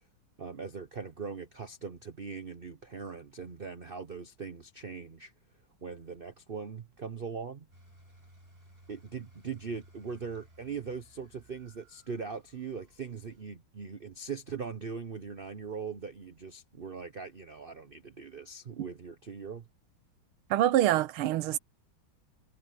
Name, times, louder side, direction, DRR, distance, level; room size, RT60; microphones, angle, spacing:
voice 1, 0.4-5.3 5.8-7.7 8.9-19.7, right 5 dB, 50° right, 0.7 m, -40 dB
sound 1, 7.7-13.4, right 1 dB, 25° right, 7.2 m, -59 dB
voice 2, 20.5-21.6, right 13 dB, 90° right, 1.6 m, -25 dB
omnidirectional pair, 2.3 m